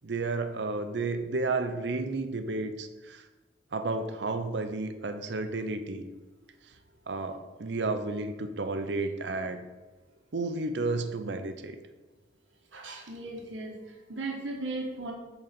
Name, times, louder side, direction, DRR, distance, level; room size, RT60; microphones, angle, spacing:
voice 1, 0.0-3.3 3.7-6.1 7.1-9.6 10.3-11.8, right 3 dB, 65° right, 8 dB, 0.7 m, -32 dB
voice 2, 12.7-15.1, right 2 dB, 90° right, 0 dB, 1.2 m, -37 dB
8.9 x 4.0 x 5.9 m, 1.2 s
head